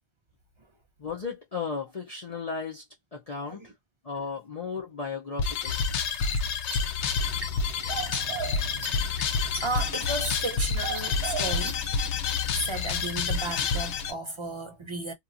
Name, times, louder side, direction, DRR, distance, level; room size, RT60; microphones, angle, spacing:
voice 1, 1.0-2.8 3.1-3.6 4.0-5.8, left 5 dB, 40° left, 0.6 m, -35 dB
voice 2, 3.4-3.7 9.6-11.8 12.5-15.1, right 2 dB, 45° right, 0.4 m, -34 dB
sound 1, 5.4-14.1, left 5 dB, 85° left, 0.9 m, -28 dB
sound 2, 6.4-12.0, right 2 dB, 25° right, 1.1 m, -41 dB
sound 3, 7.0-14.2, right 8 dB, 65° right, 0.8 m, -41 dB
2.9 x 2.3 x 2.5 m
omnidirectional pair, 1.1 m